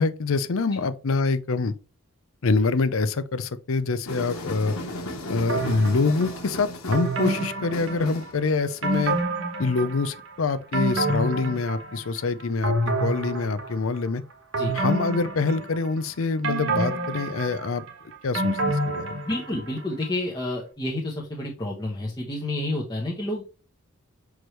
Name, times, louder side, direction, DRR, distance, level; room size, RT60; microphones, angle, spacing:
voice 1, 0.0-1.7 2.4-4.7 5.3-9.2 9.6-14.2 14.7-17.8 18.2-19.1, left 3 dB, 65° left, 0.6 m, -25 dB
sound 1, 4.0-9.2, left 1 dB, 85° left, 1.6 m, -36 dB
sound 2, 5.5-6.3 6.9-8.4 8.8-10.2 10.5-12.2 12.6-14.0 14.5-16.0 16.4-19.7 20.0-20.1, right 2 dB, 65° right, 1.5 m, -28 dB
voice 2, 19.3-23.4, left 1 dB, 20° left, 1.0 m, -29 dB
6.2 x 4.7 x 3.2 m
head